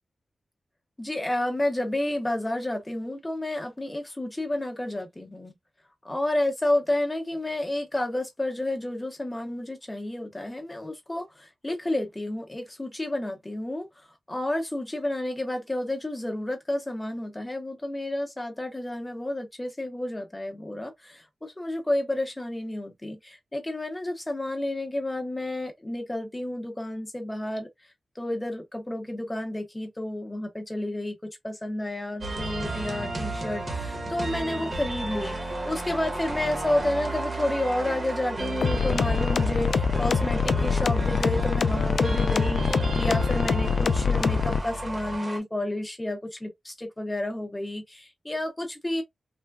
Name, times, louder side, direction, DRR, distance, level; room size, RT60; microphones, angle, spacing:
voice 1, 1.0-5.6 6.0-27.7 28.2-49.0, left 1 dB, 15° left, 0.7 m, -30 dB
sound 1, 32.2-45.4, right 2 dB, 35° right, 0.9 m, -33 dB
sound 2, 38.6-44.6, left 5 dB, 85° left, 0.3 m, -24 dB
3.3 x 2.1 x 2.2 m
wide cardioid pair, 155°, 0 cm